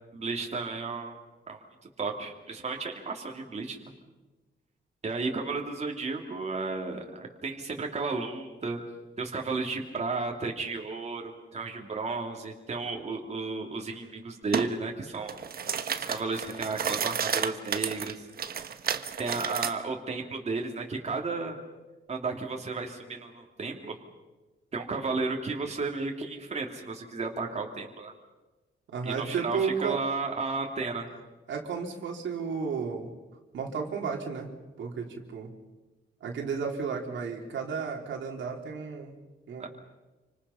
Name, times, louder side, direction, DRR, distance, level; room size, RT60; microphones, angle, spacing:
voice 1, 0.1-1.2 1.5-1.6 2.0-3.8 5.0-8.8 9.2-15.4 16.0-18.2 19.2-21.6 22.1-24.0 24.7-28.1 29.0-31.1 39.6-39.7, right 3 dB, 35° right, 1 dB, 2.9 m, -33 dB
sound 1, 14.5-14.7 15.1-19.7, right 7 dB, 55° right, 1.3 m, -31 dB
voice 2, 28.9-30.0 31.5-33.1 33.5-34.5 34.8-35.5 36.2-39.2 39.5-39.7, right 6 dB, 90° right, 1 dB, 3.7 m, -33 dB
28.5 x 26.0 x 5.7 m, 1.2 s
wide cardioid pair, 155°, 19 cm